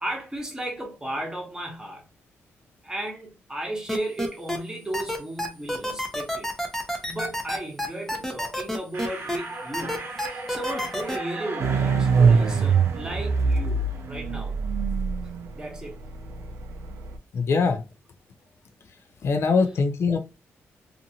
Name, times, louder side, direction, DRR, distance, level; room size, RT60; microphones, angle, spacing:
voice 1, 0.0-2.0 2.8-6.5 7.0-14.6 15.5-16.0, right 1 dB, 15° right, 1.1 m, -35 dB
sound 1, 3.9-4.6 4.9-9.4 9.7-11.2, equal, 5° left, 0.7 m, -28 dB
sound 2, 8.9-14.5, right 2 dB, 45° right, 0.8 m, -38 dB
sound 3, 11.6-17.2, right 5 dB, 75° right, 0.4 m, -23 dB
voice 2, 17.3-17.8 19.2-20.2, left 4 dB, 60° left, 0.5 m, -22 dB
2.5 x 2.5 x 2.8 m
cardioid pair, 95°, 5 cm